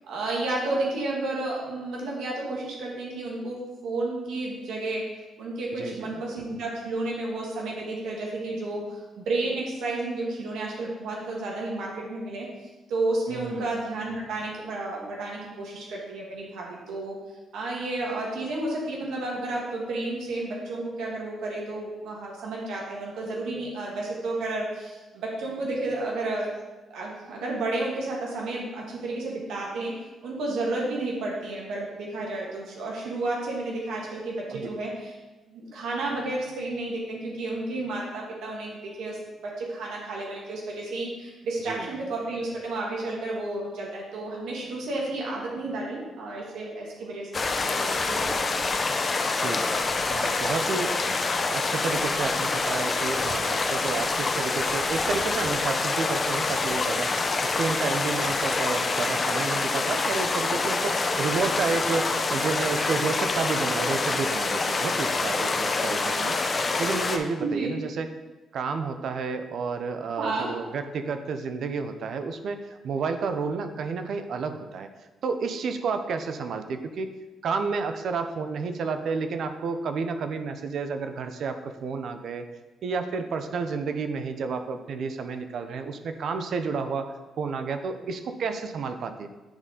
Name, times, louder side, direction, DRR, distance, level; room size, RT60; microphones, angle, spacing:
voice 1, 0.1-5.0 5.4-12.5 12.9-17.2 17.5-26.5 26.9-29.9 30.2-35.1 35.5-48.3 67.4-67.7 70.2-70.5, right 2 dB, 80° right, -3 dB, 1.5 m, -31 dB
voice 2, 5.8-6.2 13.3-13.7 34.5-34.8 41.6-42.0 49.4-49.7 50.1-50.9 51.5-57.2 57.4-66.4 66.8-68.1 68.5-74.9 75.2-77.1 77.4-82.5 82.8-89.3, right 4 dB, 65° right, 8 dB, 0.6 m, -31 dB
sound 1, 47.3-67.2, left 3 dB, 35° left, 0.7 m, -26 dB
9.6 x 4.1 x 3.8 m, 1.2 s
cardioid pair, 90°, 0 cm